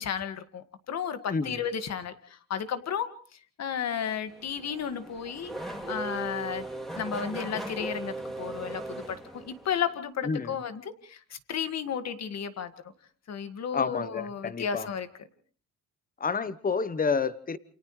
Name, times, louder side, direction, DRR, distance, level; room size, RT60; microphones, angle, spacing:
voice 1, 0.0-3.1 3.6-5.5 5.9-6.7 6.9-12.7 13.3-15.1, left 7 dB, 60° left, 10 dB, 2.0 m, -33 dB
voice 2, 1.3-1.6 10.2-10.5 13.7-14.9 16.2-17.6, left 5 dB, 30° left, 15 dB, 1.1 m, -29 dB
Race car auto racing / Accelerating revving vroom, 4.3-9.9, right 2 dB, ahead, 3.0 m, -38 dB
28.5 x 27.5 x 3.3 m, 0.43 s
cardioid pair, 90°, 30 cm